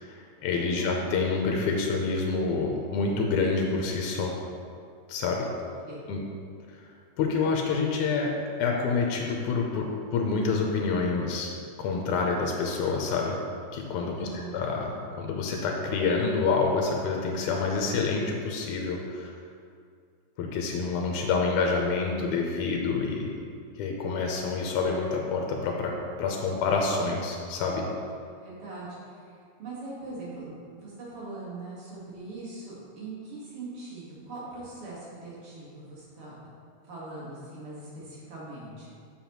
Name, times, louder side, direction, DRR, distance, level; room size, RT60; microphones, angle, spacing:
voice 1, 0.0-4.4 5.1-5.5 6.1-6.2 6.7-6.8 7.2-8.3 8.6-11.5 11.8-13.4 13.7-14.3 14.5-19.3 20.4-23.3 23.8-25.9 26.2-27.9, left 4 dB, 90° left, 1 dB, 2.1 m, -27 dB
voice 2, 0.7-1.1 5.8-6.1 14.1-14.6 28.3-29.3 29.6-36.4 36.9-38.9, right 2 dB, 50° right, -7 dB, 2.4 m, -41 dB
7.3 x 7.1 x 3.0 m, 2.3 s
omnidirectional pair, 3.5 m